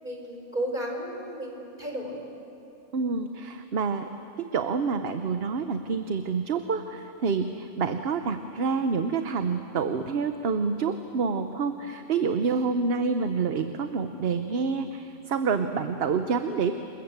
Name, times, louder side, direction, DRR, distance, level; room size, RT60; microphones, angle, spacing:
voice 1, 0.0-2.2 12.4-12.7, right 1 dB, 40° right, 1 dB, 4.5 m, -34 dB
voice 2, 2.9-4.1 4.4-16.7, right 5 dB, 55° right, 8 dB, 1.1 m, -27 dB
28.5 x 21.5 x 8.1 m, 2.8 s
omnidirectional pair, 1.2 m